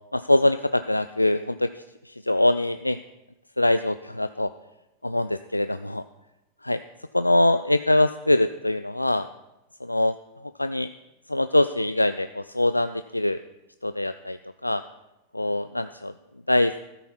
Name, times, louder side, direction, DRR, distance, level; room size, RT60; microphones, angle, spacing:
voice 1, 0.1-1.7 2.1-3.0 3.6-4.5 5.0-6.0 6.6-6.8 7.1-9.3 9.8-10.1 10.6-10.9 11.3-13.4 13.8-14.4 14.6-14.8 15.3-16.1 16.5-16.8, left 1 dB, 85° left, 12 dB, 0.3 m, -23 dB
14.0 x 13.0 x 4.2 m, 0.93 s
figure-of-eight pair, 90°, 0 cm